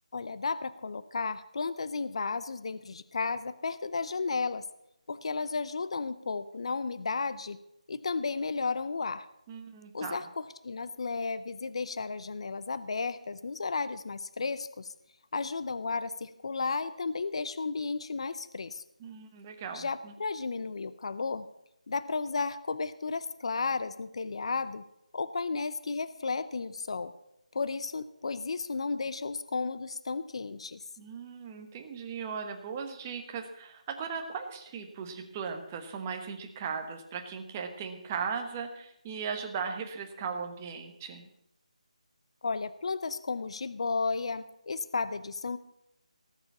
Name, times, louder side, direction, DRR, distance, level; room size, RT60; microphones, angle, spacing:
voice 1, 0.1-4.7 5.1-7.6 7.9-9.3 9.9-14.9 15.3-18.8 19.7-21.5 21.9-24.8 25.1-27.1 27.5-30.8 42.4-45.6, left 4 dB, 50° left, 14 dB, 0.6 m, -33 dB
voice 2, 9.5-10.2 19.0-20.1 31.0-41.3, right 6 dB, 15° right, 4 dB, 1.1 m, -38 dB
18.0 x 6.9 x 7.2 m, 0.82 s
figure-of-eight pair, 170°, 4 cm